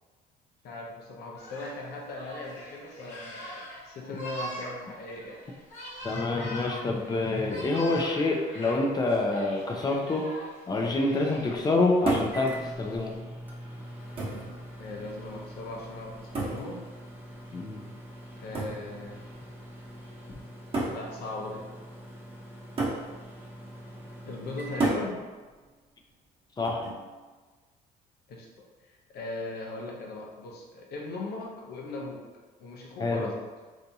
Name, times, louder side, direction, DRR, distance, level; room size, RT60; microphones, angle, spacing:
voice 1, 0.6-5.4 14.8-16.8 18.4-19.3 20.9-21.6 24.2-25.2 28.3-32.2 32.6-33.4, left 2 dB, 70° left, -1 dB, 0.8 m, -39 dB
sound 1, 1.4-13.2, equal, 45° left, 1.2 m, -43 dB
voice 2, 6.0-10.3 10.7-13.1 17.5-17.8 26.6-26.9 33.0-33.3, left 2 dB, 25° left, 1 dB, 0.5 m, -27 dB
sound 2, 12.1-12.4 13.4-13.5 14.2-14.5 16.3-16.7 18.5-18.8 19.9-20.0 20.7-21.0 22.8-23.1 24.8-25.1 26.6-27.0, right 2 dB, 35° right, 1.0 m, -29 dB
Microwave oven, 12.3-25.7, equal, 10° right, 0.7 m, -45 dB
3.4 x 2.7 x 2.7 m, 1.3 s
cardioid pair, 110°, 17 cm